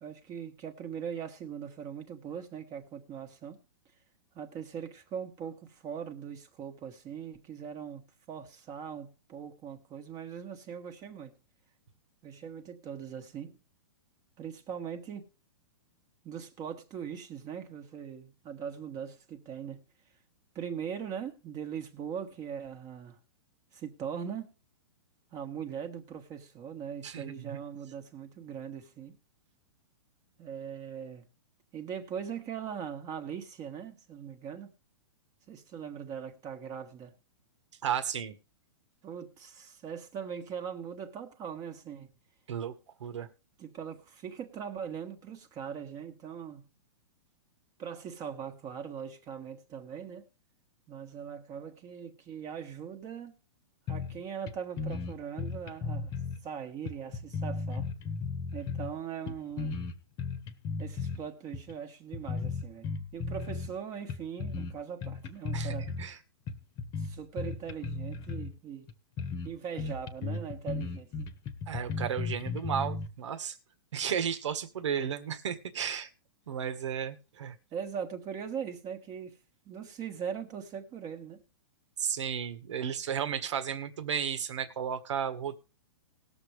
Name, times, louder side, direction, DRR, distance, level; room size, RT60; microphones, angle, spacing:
voice 1, 0.0-3.6 4.3-11.4 12.2-13.6 14.4-15.3 16.2-19.9 20.5-23.2 23.7-24.5 25.3-29.2 30.4-31.2 31.7-34.7 35.5-37.1 39.0-42.1 43.6-46.7 47.8-50.3 50.9-53.3 53.9-56.1 56.4-57.9 58.5-59.8 60.8-66.0 67.0-68.9 69.4-71.4 77.7-79.4 79.7-81.4, right 7 dB, 25° right, 1.5 m, -40 dB
voice 2, 27.0-27.6 37.8-38.4 42.5-42.7 43.0-43.3 65.5-66.2 71.7-73.6 73.9-76.1 76.5-77.6 82.0-85.6, right 8 dB, 75° right, 1.8 m, -33 dB
sound 1, 53.9-54.2 54.5-54.6 54.8-56.4 56.9-58.9 59.3-61.2 61.5-61.7 62.1-63.8 64.1-64.7 65.0-66.1 66.5-68.5 68.9-69.0 69.2-69.5 69.8-73.1, left 4 dB, 25° left, 1.3 m, -35 dB
19.5 x 7.0 x 3.3 m
hypercardioid pair, 155°, 15 cm